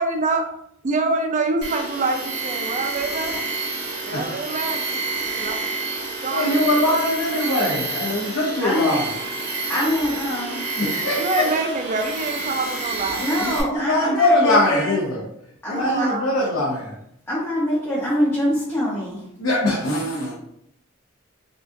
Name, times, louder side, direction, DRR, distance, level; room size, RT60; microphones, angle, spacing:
voice 1, 0.0-0.4 0.8-3.4 4.0-5.0 5.4-5.6 6.2-6.7 11.2-13.6 15.7-16.6 19.8-19.9, right 3 dB, 35° right, 4 dB, 0.4 m, -26 dB
Tools, 1.6-13.6, right 3 dB, 55° right, 1.0 m, -29 dB
voice 2, 6.3-9.1 10.8-11.5 13.4-15.2 15.7-17.0 19.4-20.3, left 1 dB, 70° left, -4 dB, 0.7 m, -22 dB
voice 3, 8.6-9.0 9.7-10.6 13.2-14.9 15.6-16.1 17.3-19.2, equal, 10° left, -8 dB, 0.7 m, -24 dB
3.6 x 2.4 x 2.6 m, 0.73 s
head